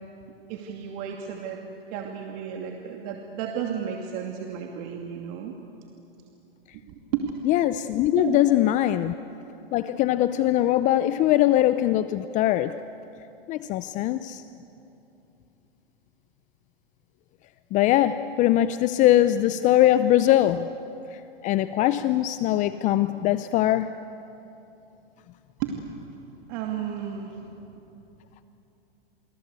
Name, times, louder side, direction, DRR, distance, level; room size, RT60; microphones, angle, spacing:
voice 1, 0.5-1.6 1.9-5.5 6.9-7.3 8.1-8.4 25.6-25.9 26.5-27.5, right 8 dB, 45° right, 1 dB, 2.6 m, -33 dB
voice 2, 7.4-9.1 9.7-12.8 13.5-14.4 17.7-20.7 21.4-23.9, left 13 dB, 25° left, 12 dB, 0.6 m, -21 dB
29.0 x 24.5 x 8.3 m, 2.9 s
hypercardioid pair, 135°, 30 cm